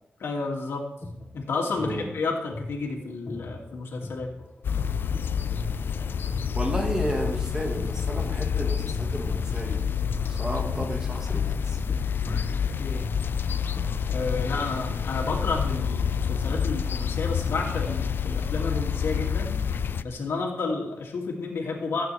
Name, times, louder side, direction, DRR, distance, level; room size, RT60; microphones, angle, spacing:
voice 1, 0.2-0.8 1.3-4.3 12.8-13.1 14.1-19.6 20.0-22.1, left 3 dB, 90° left, -1 dB, 2.5 m, -31 dB
sound 1, 0.8-8.5 8.9-16.5, left 1 dB, 30° left, 1.4 m, -40 dB
voice 2, 1.8-2.1 6.5-9.9 10.3-11.8, right 1 dB, 15° right, 2 dB, 1.8 m, -32 dB
sound 2, 4.6-20.0, left 7 dB, 65° left, 0.4 m, -28 dB
15.5 x 8.9 x 3.5 m, 0.83 s
wide cardioid pair, 130°, 4 cm